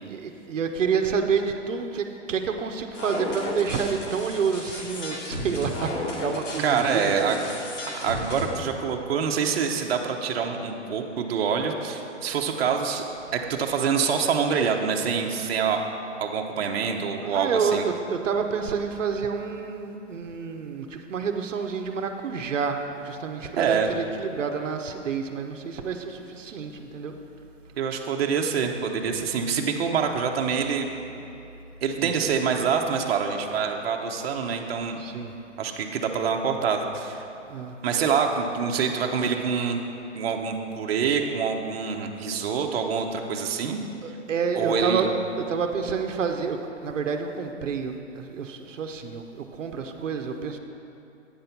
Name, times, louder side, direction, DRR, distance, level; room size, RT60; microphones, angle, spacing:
voice 1, 0.0-7.4 17.2-27.1 31.9-32.2 35.0-35.4 37.4-37.8 44.0-50.6, right 6 dB, 85° right, 5 dB, 0.8 m, -29 dB
sound 1, 2.9-8.5, left 1 dB, 75° left, 2.0 m, -34 dB
voice 2, 6.6-7.4 7.9-13.0 13.3-15.8 16.2-17.8 23.6-23.9 27.8-30.9 31.8-35.0 35.6-37.2 37.8-39.8 40.1-43.8 44.6-45.1, right 6 dB, 55° right, 3 dB, 0.8 m, -26 dB
8.8 x 5.5 x 5.8 m, 2.8 s
hypercardioid pair, 155°, 37 cm